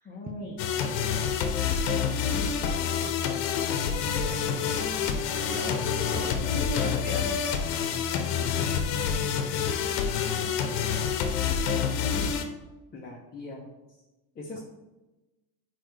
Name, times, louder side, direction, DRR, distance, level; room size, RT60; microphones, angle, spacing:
voice 1, 0.0-0.6 12.0-12.3 12.9-14.0 14.3-14.6, left 2 dB, 20° left, -3 dB, 0.7 m, -41 dB
sound 1, 0.6-12.4, left 7 dB, 85° left, 0.9 m, -27 dB
voice 2, 0.7-1.6 4.2-4.6 5.4-6.4 6.7-7.8 14.5-14.6, right 2 dB, 20° right, 2 dB, 0.4 m, -42 dB
6.4 x 4.7 x 3.2 m, 1.1 s
cardioid pair, 140°, 48 cm